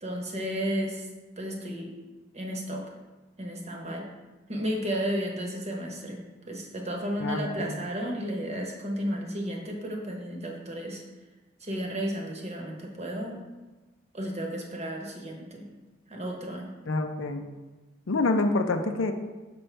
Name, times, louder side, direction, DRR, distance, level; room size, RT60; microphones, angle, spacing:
voice 1, 0.0-1.1 1.4-2.0 2.3-2.8 3.4-4.1 4.5-6.2 6.5-11.0 11.6-13.4 14.1-15.6 16.1-16.7, equal, 35° right, 0 dB, 1.0 m, -33 dB
voice 2, 7.2-7.7 16.9-17.5 18.1-19.1, left 2 dB, 75° left, 6 dB, 0.6 m, -27 dB
6.0 x 5.4 x 3.3 m, 1.2 s
head